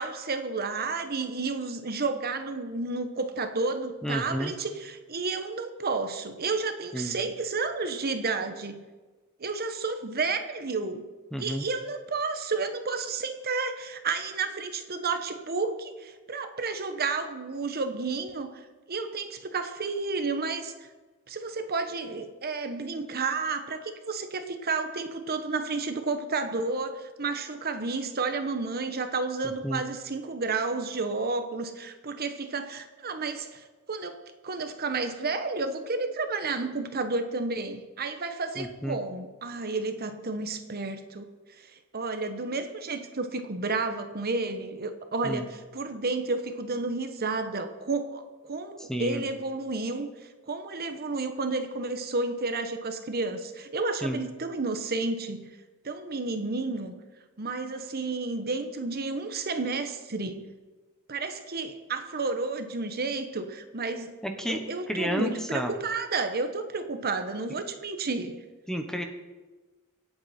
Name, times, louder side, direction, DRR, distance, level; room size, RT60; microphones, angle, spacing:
voice 1, 0.0-8.8 9.4-11.0 11.4-18.6 18.9-20.7 21.3-23.8 24.1-34.2 34.4-41.3 41.6-41.7 41.9-45.5 45.7-50.1 50.5-55.5 55.8-57.0 57.4-60.5 61.1-64.1 64.4-68.4, right 3 dB, 45° right, 8 dB, 1.1 m, -31 dB
voice 2, 4.0-4.5 6.9-7.2 11.3-11.7 29.4-29.8 38.6-39.0 45.2-45.4 48.8-49.3 54.0-54.2 64.2-65.7 68.7-69.0, equal, 5° left, 5 dB, 1.1 m, -31 dB
25.0 x 8.6 x 4.4 m, 1.3 s
head